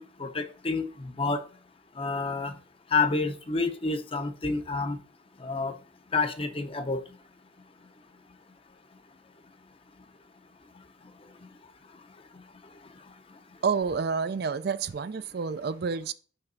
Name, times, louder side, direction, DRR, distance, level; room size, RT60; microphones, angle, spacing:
voice 1, 0.0-1.5 2.0-2.5 2.9-5.0 5.4-5.7 6.1-7.0, left 4 dB, 30° left, 0.7 m, -29 dB
voice 2, 13.6-16.1, right 5 dB, 55° right, 0.4 m, -29 dB
5.8 x 5.6 x 3.9 m
head